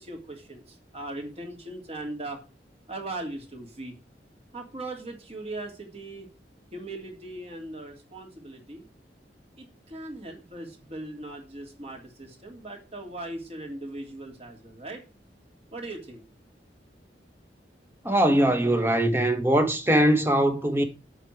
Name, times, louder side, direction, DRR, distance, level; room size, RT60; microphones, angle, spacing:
voice 1, 0.0-2.4 2.9-3.9 4.5-6.3 6.7-8.8 9.6-15.0 15.7-16.2, right 2 dB, 35° right, 3.1 m, -39 dB
voice 2, 18.0-20.8, right 1 dB, 15° right, 1.5 m, -21 dB
8.0 x 6.1 x 7.9 m
head